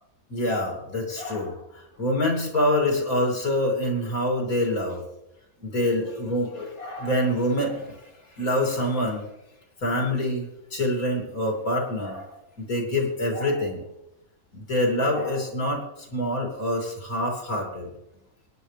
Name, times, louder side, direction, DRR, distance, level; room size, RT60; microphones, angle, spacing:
voice 1, 0.3-5.0 5.6-8.1 8.4-9.3 9.8-13.9 14.5-18.0, left 1 dB, 65° left, 0 dB, 3.4 m, -26 dB
26.0 x 10.0 x 3.4 m, 0.90 s
omnidirectional pair, 1.6 m